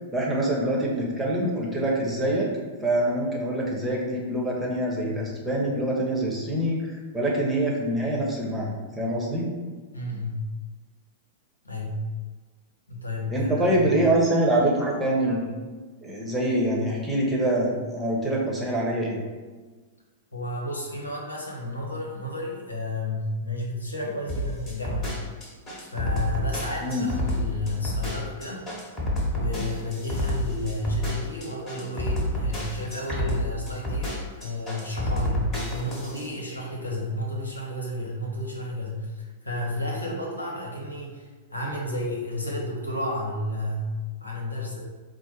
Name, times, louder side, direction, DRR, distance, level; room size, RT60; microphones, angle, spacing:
voice 1, 0.1-2.5 2.8-9.5 13.3-15.5 16.0-19.2 26.8-27.1, right 1 dB, 10° right, -4 dB, 1.0 m, -25 dB
voice 2, 9.9-10.4 11.6-12.0 12.9-13.9 20.3-25.1 25.9-28.9 29.3-43.9 44.2-44.8, left 1 dB, 85° left, -2 dB, 0.9 m, -32 dB
sound 1, 24.3-36.3, left 1 dB, 25° left, 1.4 m, -29 dB
4.4 x 2.1 x 4.7 m, 1.4 s
figure-of-eight pair, 100°, 0 cm